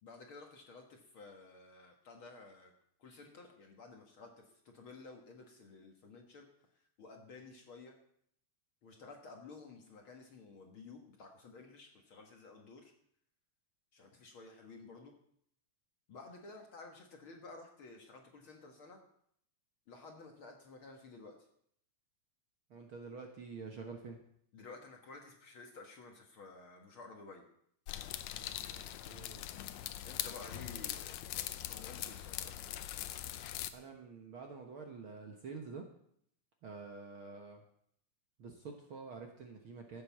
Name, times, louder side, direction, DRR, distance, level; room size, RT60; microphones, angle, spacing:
voice 1, 0.0-2.7 3.0-6.5 6.7-7.9 8.8-12.9 13.9-15.1 16.1-19.0 19.9-21.4 24.5-27.4 30.0-31.2 31.6-32.6, left 3 dB, 50° left, 3 dB, 1.9 m, -53 dB
voice 2, 22.7-24.2 28.7-29.5 33.7-35.8 36.6-37.6 38.4-40.0, right 4 dB, 55° right, 3 dB, 1.6 m, -48 dB
sound 1, 27.9-33.7, left 12 dB, 70° left, 1.9 m, -42 dB
14.5 x 8.0 x 7.3 m, 0.69 s
omnidirectional pair, 3.6 m